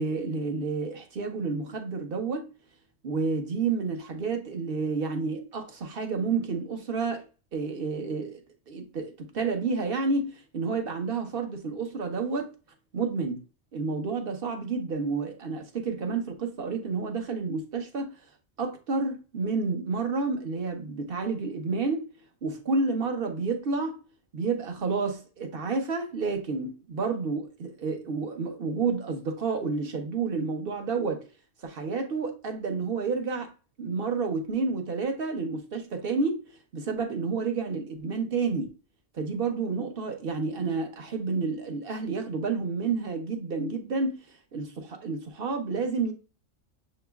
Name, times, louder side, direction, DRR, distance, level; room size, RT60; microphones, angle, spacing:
voice 1, 0.0-2.5 3.0-7.2 7.5-8.4 8.7-12.5 12.9-13.4 13.7-18.1 18.6-22.1 22.4-24.0 24.3-31.3 31.6-33.5 33.8-36.4 36.7-38.7 39.1-44.2 44.5-46.1, right 4 dB, 50° right, 1.0 m, -30 dB
6.9 x 3.0 x 2.3 m
omnidirectional pair, 1.4 m